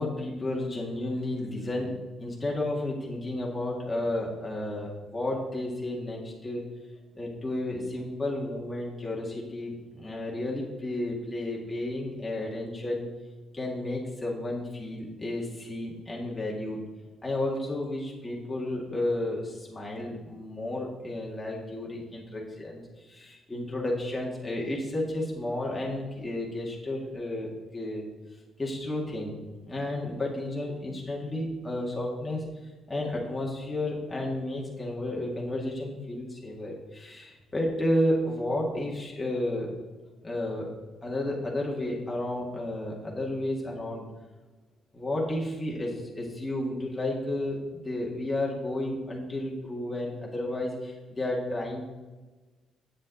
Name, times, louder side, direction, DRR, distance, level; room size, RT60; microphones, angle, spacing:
voice 1, 0.0-6.6 7.2-13.1 13.5-16.8 17.2-28.1 28.6-29.4 29.6-32.4 32.9-39.7 40.2-40.7 41.0-44.1 44.9-51.9, left 1 dB, 15° left, -3 dB, 1.9 m, -32 dB
8.1 x 7.4 x 4.0 m, 1.2 s
cardioid pair, 90°, 0 cm